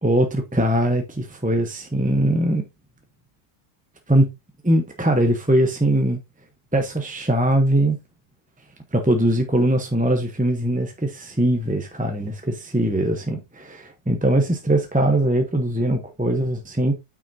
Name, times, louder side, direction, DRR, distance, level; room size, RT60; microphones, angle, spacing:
voice 1, 0.0-2.6 4.1-4.3 4.6-6.2 6.7-8.0 8.9-17.0, right 1 dB, 10° right, 0.6 m, -21 dB
8.8 x 6.2 x 2.7 m
omnidirectional pair, 1.7 m